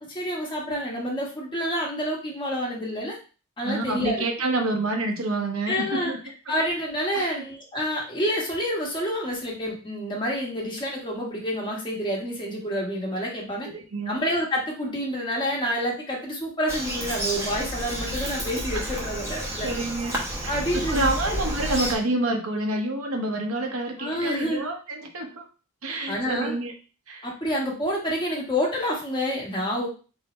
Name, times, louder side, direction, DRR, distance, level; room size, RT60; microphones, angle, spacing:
voice 1, 0.1-3.2 3.6-4.2 5.7-6.1 6.5-13.7 14.1-19.7 20.5-21.4 24.0-24.6 26.1-26.6 27.2-29.9, equal, 20° left, -2 dB, 1.2 m, -28 dB
voice 2, 3.6-6.2 7.1-7.5 13.6-14.2 18.7-18.8 19.6-25.5 25.8-26.7 27.1-27.3, right 2 dB, 70° right, 3 dB, 0.9 m, -28 dB
Bird vocalization bird call bird song, 16.7-22.0, equal, 10° right, 0.8 m, -30 dB
3.6 x 2.7 x 4.3 m, 0.36 s
head